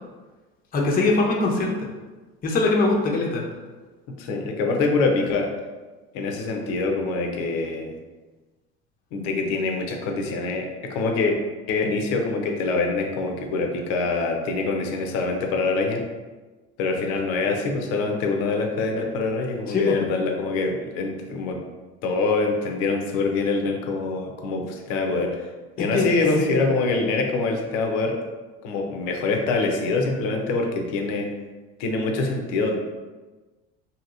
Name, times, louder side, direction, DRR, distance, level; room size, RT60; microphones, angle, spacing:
voice 1, 0.7-1.7 2.4-3.4 19.7-20.0 25.9-26.1 26.4-26.7, left 3 dB, 30° left, -1 dB, 0.6 m, -22 dB
voice 2, 4.2-5.5 6.1-7.9 9.1-11.4 11.7-16.0 16.8-21.6 22.0-25.5 25.8-28.2 28.6-31.3 31.8-32.8, left 3 dB, 75° left, 2 dB, 0.6 m, -25 dB
2.8 x 2.8 x 2.5 m, 1.2 s
supercardioid pair, 85°, 31 cm